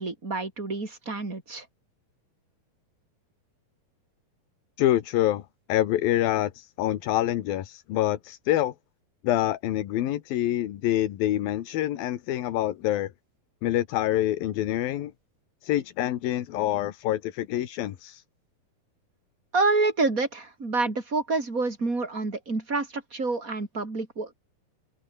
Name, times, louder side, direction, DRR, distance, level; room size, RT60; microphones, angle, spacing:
voice 1, 0.0-1.6 19.5-24.3, right 3 dB, 20° right, 4.8 m, -28 dB
voice 2, 4.8-8.7 9.2-13.1 13.6-15.1 15.6-18.2, left 13 dB, 80° left, 3.2 m, -26 dB
open air
omnidirectional pair, 4.2 m